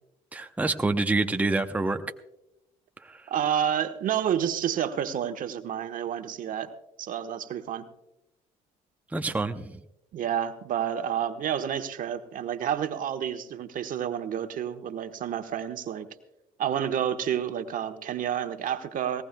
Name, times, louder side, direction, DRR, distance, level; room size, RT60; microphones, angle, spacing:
voice 1, 0.3-2.0 3.0-3.3 9.1-9.8, right 2 dB, 10° right, 6 dB, 0.8 m, -27 dB
voice 2, 3.3-6.7 7.0-7.8 10.1-16.1 16.6-19.2, right 9 dB, 55° right, 7 dB, 1.2 m, -29 dB
19.0 x 18.5 x 2.2 m, 0.88 s
supercardioid pair, 75°, 16 cm